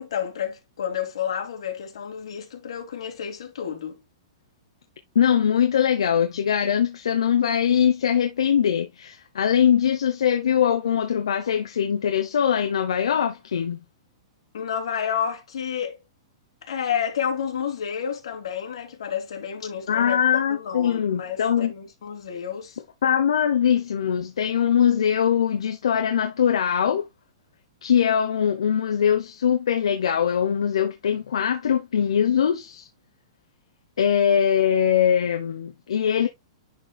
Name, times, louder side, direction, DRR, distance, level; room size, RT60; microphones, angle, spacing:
voice 1, 0.0-4.0 14.5-16.0 16.6-22.8, left 8 dB, 70° left, 2.7 m, -30 dB
voice 2, 5.1-13.8 19.9-21.7 23.0-27.0 27.8-32.9 34.0-36.3, left 8 dB, 90° left, 0.9 m, -22 dB
10.5 x 4.4 x 2.4 m
hypercardioid pair, 165°, 3 cm